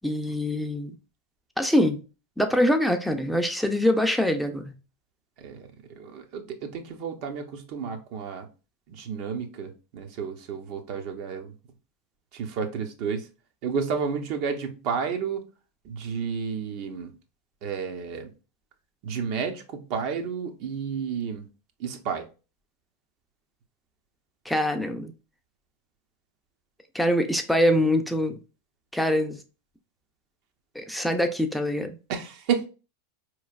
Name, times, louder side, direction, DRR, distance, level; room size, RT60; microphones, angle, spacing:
voice 1, 0.0-0.9 1.6-2.0 2.4-4.7 24.5-25.1 26.9-28.4 28.9-29.4 30.8-32.0, left 1 dB, ahead, 0.5 m, -24 dB
voice 2, 5.4-8.5 8.9-11.5 12.3-13.3 13.6-15.4 15.8-17.1 17.6-18.3 19.0-21.5 21.8-22.2 32.1-32.7, right 6 dB, 55° right, 0.8 m, -31 dB
4.4 x 3.1 x 2.4 m
hypercardioid pair, 100°, 0 cm